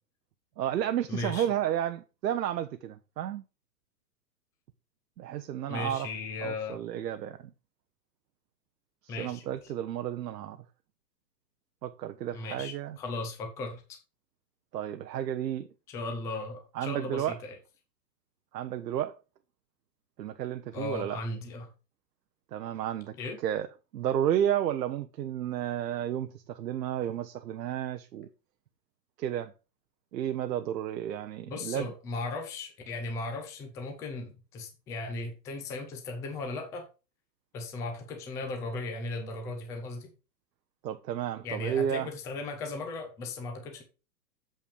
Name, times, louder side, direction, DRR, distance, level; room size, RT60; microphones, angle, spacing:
voice 1, 0.6-3.4 5.2-6.1 6.4-7.5 9.0-10.6 11.8-13.0 14.7-15.7 16.7-17.4 18.5-19.2 20.2-21.2 22.5-23.2 23.4-23.7 23.9-28.3 29.2-29.5 30.1-31.9 40.8-42.1, right 10 dB, 75° right, 0.8 m, -32 dB
voice 2, 1.1-1.5 5.7-6.8 9.1-9.4 12.3-13.8 15.9-17.5 20.7-21.7 23.2-23.4 31.5-36.9 37.5-40.1 41.4-43.8, left 3 dB, 5° left, 0.5 m, -37 dB
7.0 x 5.6 x 5.0 m
hypercardioid pair, 140°, 50 cm